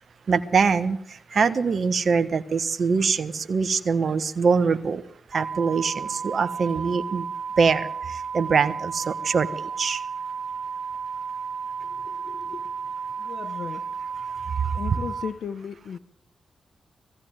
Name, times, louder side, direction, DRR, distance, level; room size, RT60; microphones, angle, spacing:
voice 1, 0.3-1.0 1.3-5.0 5.3-7.2 7.6-7.9 8.3-9.5 9.8-10.0, right 5 dB, 65° right, 1.3 m, -23 dB
sound 1, 5.3-15.3, right 6 dB, 35° right, 2.2 m, -33 dB
voice 2, 11.8-12.7 13.2-14.0 14.7-16.0, left 7 dB, 75° left, 0.9 m, -36 dB
20.0 x 15.5 x 9.3 m
supercardioid pair, 40°, 0 cm